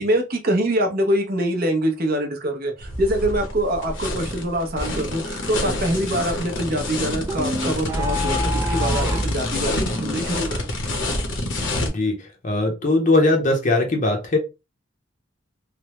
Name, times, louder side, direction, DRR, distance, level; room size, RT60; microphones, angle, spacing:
voice 1, 0.0-10.8, right 1 dB, 50° right, 0.7 m, -24 dB
sound 1, 2.8-11.9, left 1 dB, 65° left, 0.8 m, -27 dB
sound 2, 7.3-9.4, equal, 15° right, 0.3 m, -25 dB
voice 2, 11.9-14.4, left 2 dB, 40° left, 0.7 m, -20 dB
3.3 x 2.1 x 2.9 m
head